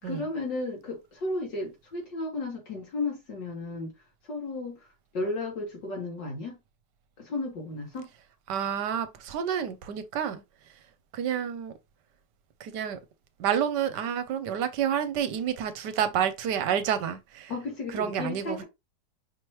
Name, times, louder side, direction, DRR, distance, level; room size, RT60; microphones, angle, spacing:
voice 1, 0.0-3.9 4.3-4.8 5.1-6.6 7.2-8.1 17.5-18.6, left 2 dB, 75° left, 2.8 m, -33 dB
voice 2, 8.5-10.4 11.1-11.7 12.6-13.0 13.4-17.5 17.9-18.6, right 9 dB, 75° right, 1.2 m, -29 dB
5.8 x 3.1 x 3.0 m
omnidirectional pair, 1.9 m